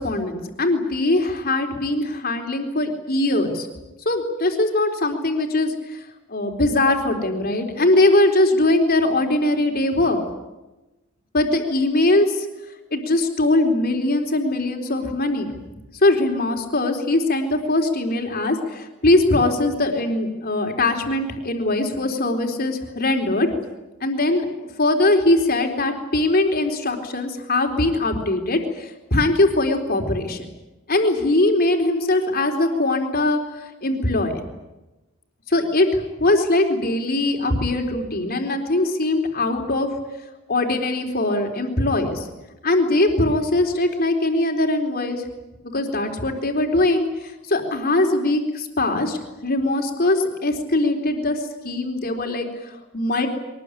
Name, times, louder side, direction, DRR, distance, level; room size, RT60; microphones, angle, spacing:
voice 1, 0.0-3.7 4.1-6.0 6.3-10.2 11.3-12.5 12.9-15.5 16.0-23.5 24.0-24.4 24.8-30.4 30.9-34.4 35.5-39.9 40.5-42.3 42.6-45.2 45.7-53.3, left 2 dB, 45° left, 4 dB, 4.1 m, -21 dB
23.5 x 20.5 x 10.0 m, 1.0 s
head